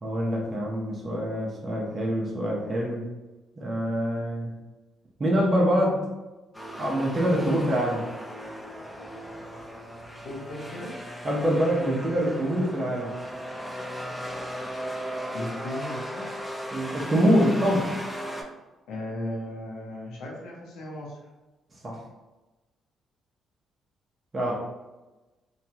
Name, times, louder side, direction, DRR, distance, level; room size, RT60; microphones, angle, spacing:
voice 1, 0.0-3.0 3.6-4.5 5.2-6.0 6.8-8.0 11.2-13.1 16.7-17.9 21.8-22.0 24.3-24.5, equal, 35° right, -3 dB, 0.7 m, -25 dB
sound 1, 6.5-18.4, equal, 10° left, 0.6 m, -37 dB
voice 2, 10.2-10.9 15.3-16.4 18.9-21.2 24.4-24.5, left 1 dB, 85° left, -3 dB, 0.7 m, -36 dB
2.9 x 2.3 x 2.7 m, 1.1 s
cardioid pair, 90°, 0 cm